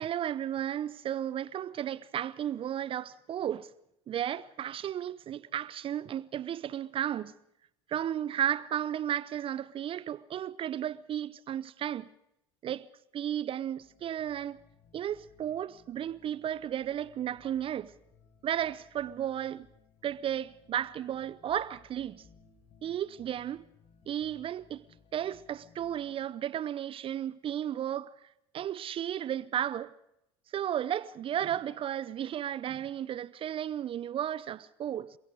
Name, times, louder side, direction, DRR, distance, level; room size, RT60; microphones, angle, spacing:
voice 1, 0.0-3.7 4.1-7.3 7.9-12.1 12.6-12.9 13.1-14.6 14.9-17.9 18.4-19.7 20.0-22.2 22.8-23.6 24.1-24.8 25.1-28.3 28.5-29.9 30.5-35.2, right 10 dB, 40° right, 0.7 m, -34 dB
sound 1, 13.8-26.3, left 6 dB, 50° left, 5.3 m, -62 dB
29.0 x 23.0 x 5.0 m
hypercardioid pair, 65°, 13 cm